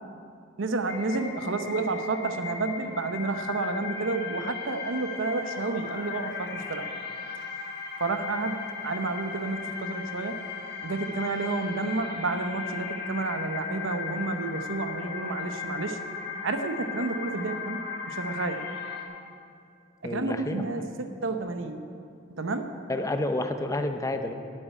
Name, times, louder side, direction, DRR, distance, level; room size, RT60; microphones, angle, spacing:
voice 1, 0.6-6.9 8.0-10.4 10.8-16.0 16.4-18.7 20.0-21.8 22.4-22.7, right 3 dB, 85° right, 7 dB, 0.8 m, -30 dB
sound 1, 0.9-19.0, left 6 dB, 60° left, 1.2 m, -37 dB
voice 2, 20.0-20.9 22.9-24.3, left 1 dB, 15° left, 7 dB, 0.6 m, -30 dB
8.8 x 8.0 x 9.0 m, 2.5 s
head